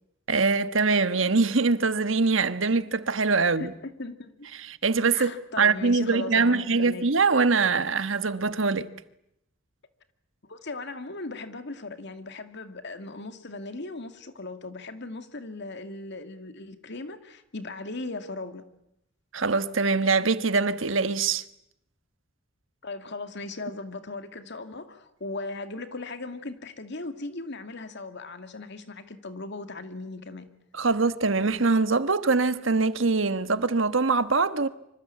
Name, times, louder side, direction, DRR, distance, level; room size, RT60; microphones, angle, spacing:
voice 1, 0.3-3.7 4.7-8.9 19.3-21.4 30.8-34.7, right 4 dB, 75° right, 1.4 m, -23 dB
voice 2, 3.4-4.5 5.1-7.1 10.4-18.6 22.8-30.5, left 3 dB, 60° left, 2.4 m, -38 dB
25.5 x 25.5 x 8.6 m
head